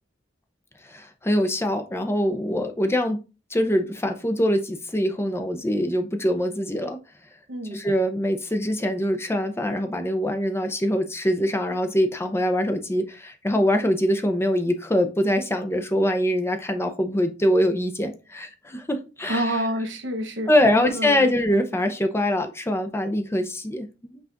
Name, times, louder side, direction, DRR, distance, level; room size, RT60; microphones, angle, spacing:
voice 1, 0.9-3.2 3.5-7.0 7.7-19.5 20.5-24.2, equal, 15° left, 0.5 m, -23 dB
voice 2, 7.5-7.8 19.3-21.3, right 1 dB, 85° right, 1.0 m, -28 dB
5.7 x 2.4 x 3.8 m
head